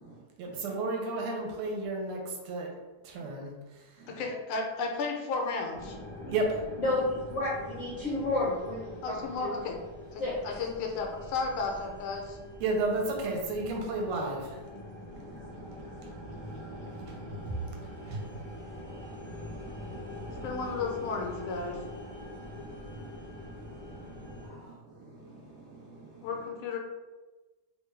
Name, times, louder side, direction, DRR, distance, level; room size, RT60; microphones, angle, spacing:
voice 1, 0.4-2.7 3.0-3.5 6.3-6.6 12.6-14.6 16.9-17.6 18.0-18.3, right 2 dB, 85° right, 1 dB, 1.5 m, -32 dB
voice 2, 4.1-6.0 9.0-9.8 10.1-12.4 20.4-21.8 26.2-26.8, left 4 dB, 80° left, 1 dB, 1.4 m, -33 dB
sound 1, 5.7-24.5, left 1 dB, 40° left, 0.3 m, -44 dB
voice 3, 6.8-7.5 7.8-9.5 10.2-10.4 24.4-24.7, left 2 dB, 55° left, -9 dB, 0.8 m, -31 dB
voice 4, 15.1-17.5 18.8-20.4 22.4-26.2, right 3 dB, 65° right, -9 dB, 0.6 m, -51 dB
3.6 x 2.2 x 3.1 m, 1.2 s
omnidirectional pair, 2.4 m